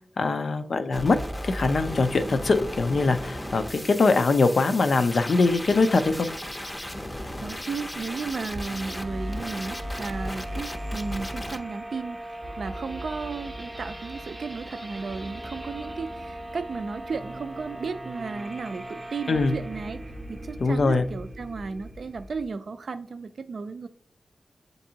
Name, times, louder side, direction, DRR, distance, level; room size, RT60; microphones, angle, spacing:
voice 1, 0.2-1.2 1.4-6.3 19.3-19.5 20.6-21.0, left 3 dB, 70° left, 8 dB, 0.4 m, -22 dB
sound 1, 0.9-11.6, equal, 20° left, 0.5 m, -35 dB
voice 2, 7.4-20.0 20.3-23.9, right 4 dB, 70° right, 10 dB, 0.3 m, -34 dB
sound 2, 8.5-22.5, right 1 dB, 20° right, 0.6 m, -39 dB
7.4 x 2.6 x 2.8 m, 0.63 s
cardioid pair, 60°, 0 cm